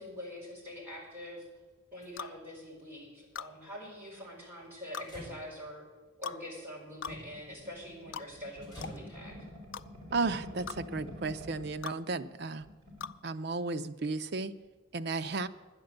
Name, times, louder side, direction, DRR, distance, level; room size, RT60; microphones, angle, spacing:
voice 1, 0.0-1.5 1.9-5.8 6.2-9.4, left 1 dB, 10° right, -6 dB, 4.8 m, -45 dB
sound 1, 1.7-2.1 5.0-5.8 7.1-7.4 7.8-8.0 8.4-9.2 10.5-11.1 12.1-12.2, equal, 20° left, 3.6 m, -49 dB
sound 2, 2.2-2.4 3.4-3.5 4.9-5.1 6.2-6.4 7.0-7.2 8.1-8.3 8.8-9.0 9.7-9.9 10.7-10.8 11.8-12.0 13.0-13.2, left 6 dB, 65° left, 0.4 m, -40 dB
sound 3, 7.3-11.8 12.2-12.3 12.5-13.1, left 1 dB, 30° right, 4.2 m, -48 dB
voice 2, 10.1-12.7 13.2-14.5 14.9-15.5, right 3 dB, 55° right, 10 dB, 0.6 m, -34 dB
10.5 x 10.0 x 7.8 m, 1.3 s
head